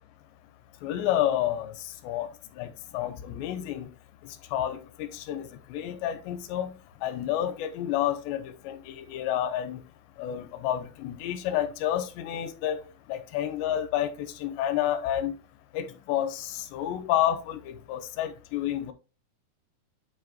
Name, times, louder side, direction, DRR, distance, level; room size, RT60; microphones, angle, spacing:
voice 1, 0.8-2.3 2.6-3.9 4.2-6.7 7.0-9.8 10.2-12.8 13.1-15.3 15.7-18.9, left 11 dB, 85° left, 2.9 m, -30 dB
8.6 x 4.9 x 3.0 m
omnidirectional pair, 5.1 m